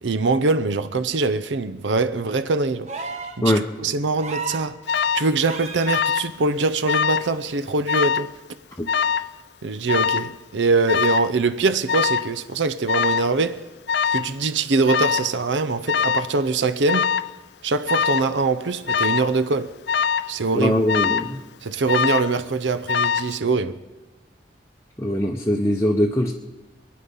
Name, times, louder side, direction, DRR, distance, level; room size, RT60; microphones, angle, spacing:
voice 1, 0.0-3.1 3.4-4.8 5.1-8.3 9.6-13.7 14.1-17.1 17.6-19.7 20.3-20.8 21.6-23.8, right 3 dB, 85° right, 0.6 m, -23 dB
sound 1, 2.9-3.4 4.2-4.7 5.4-5.9 7.4-7.5, right 4 dB, 40° right, 1.3 m, -32 dB
Alarm, 4.9-5.3 5.9-6.3 6.6-7.3 7.9-8.3 8.9-9.3 9.9-10.3 10.9-11.3 11.9-12.3 12.9-13.3 13.9-14.3 14.9-15.3 15.9-16.3 16.9-17.3 17.9-18.3 18.9-19.3 19.9-20.3 20.9-21.3 21.9-22.4 22.9-23.4, left 7 dB, 65° left, 0.4 m, -23 dB
voice 2, 20.5-21.4 25.0-26.3, left 1 dB, 15° left, 0.7 m, -21 dB
23.0 x 9.5 x 5.5 m
head